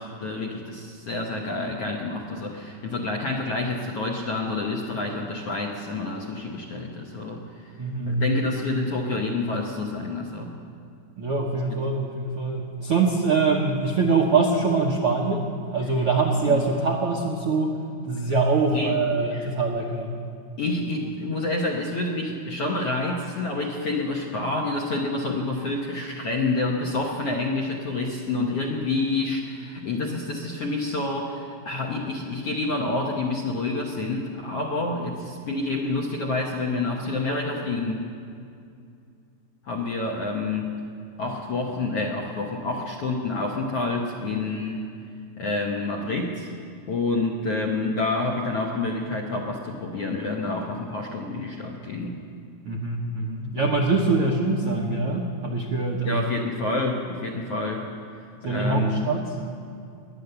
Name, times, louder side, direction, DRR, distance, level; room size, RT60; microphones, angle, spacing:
voice 1, 0.0-7.4 8.1-10.5 16.4-16.6 18.7-19.5 20.6-38.1 39.6-40.8 41.2-44.9 45.4-46.5 46.9-52.2 56.0-57.9 58.4-59.0, left 2 dB, 65° left, 1 dB, 1.6 m, -28 dB
voice 2, 7.8-8.2 11.2-15.4 15.7-17.7 18.1-20.1 28.4-28.5 52.6-56.2 58.4-59.2, right 3 dB, 70° right, 0 dB, 1.3 m, -24 dB
22.0 x 9.3 x 6.8 m, 2.4 s
omnidirectional pair, 4.1 m